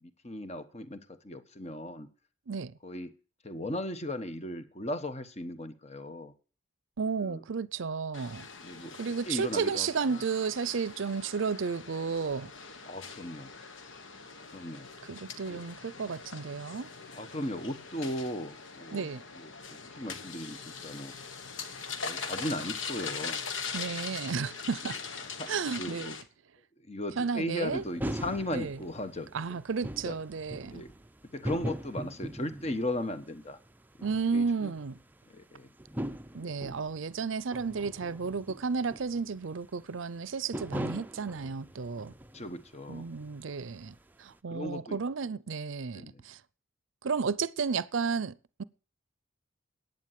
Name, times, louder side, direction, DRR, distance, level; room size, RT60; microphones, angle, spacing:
voice 1, 0.0-2.1 2.8-3.1 3.4-6.3 7.2-7.4 8.6-9.0 9.3-10.2 12.8-13.5 14.5-14.9 15.5-15.6 17.1-19.1 19.3-21.1 22.0-23.4 25.4-25.5 25.7-26.1 26.9-29.6 30.0-30.2 30.7-30.9 31.3-33.6 34.3-34.7 35.3-35.7 42.3-43.1 44.5-45.0 45.9-46.2, left 1 dB, 35° left, 1.2 m, -37 dB
voice 2, 2.5-2.8 7.0-8.5 9.0-12.5 15.1-16.9 18.9-19.2 23.7-25.0 25.5-26.1 27.2-27.8 28.5-28.8 29.3-30.8 34.0-35.0 36.3-42.1 42.9-46.4 47.0-48.6, right 5 dB, 70° right, 0.6 m, -33 dB
sound 1, 8.1-26.2, left 5 dB, 70° left, 1.5 m, -42 dB
sound 2, 27.7-42.8 43.0-44.0, right 1 dB, 10° right, 0.5 m, -41 dB
10.5 x 9.0 x 7.5 m
head